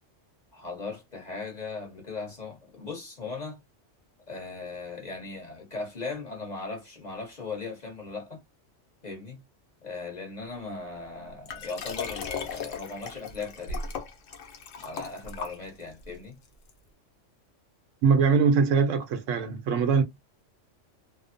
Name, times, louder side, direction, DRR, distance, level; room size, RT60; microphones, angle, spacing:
voice 1, 0.5-3.6 4.3-8.4 9.0-9.4 9.8-13.9 14.8-16.4, left 4 dB, 35° left, 1.1 m, -38 dB
Liquid, 11.5-16.0 16.7-16.8, left 5 dB, 85° left, 1.0 m, -37 dB
voice 2, 18.0-20.0, right 5 dB, 80° right, 1.0 m, -22 dB
2.8 x 2.0 x 2.5 m
omnidirectional pair, 1.3 m